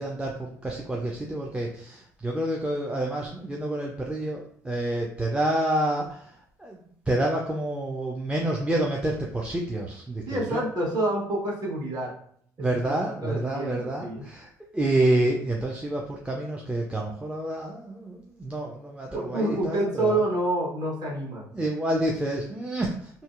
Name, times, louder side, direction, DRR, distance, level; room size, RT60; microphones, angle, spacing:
voice 1, 0.0-6.8 7.1-10.6 12.6-20.2 21.5-23.2, right 1 dB, 10° right, -1 dB, 0.4 m, -28 dB
voice 2, 10.3-12.1 12.6-14.3 19.1-21.5, right 1 dB, 45° right, -3 dB, 1.2 m, -28 dB
2.6 x 2.1 x 2.4 m, 0.63 s
hypercardioid pair, 55°, 9 cm